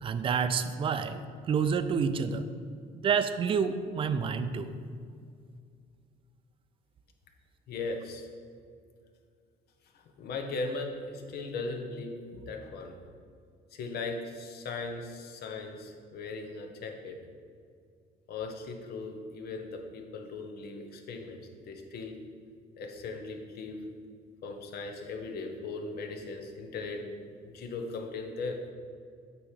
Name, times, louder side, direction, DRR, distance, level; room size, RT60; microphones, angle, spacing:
voice 1, 0.0-1.2 1.5-2.4 2.9-4.7, right 6 dB, 30° right, 10 dB, 0.4 m, -28 dB
voice 2, 7.7-8.3 10.2-13.0 13.7-17.2 18.3-21.4 21.6-22.1 22.8-23.8 24.4-27.2 27.5-28.6, left 3 dB, 70° left, 3 dB, 0.9 m, -38 dB
8.3 x 3.0 x 4.9 m, 2.2 s
cardioid pair, 110°, 17 cm